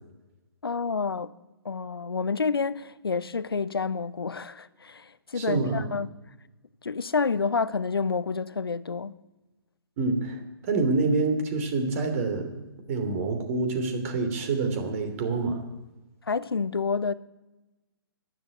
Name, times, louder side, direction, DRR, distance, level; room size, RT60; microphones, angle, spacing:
voice 1, 0.6-1.3 1.6-6.1 6.8-9.2 16.2-17.1, left 5 dB, 70° left, 0.9 m, -29 dB
voice 2, 5.3-5.9 10.0-15.6, right 3 dB, 35° right, 2.9 m, -27 dB
12.0 x 10.5 x 9.8 m
figure-of-eight pair, 130°, 13 cm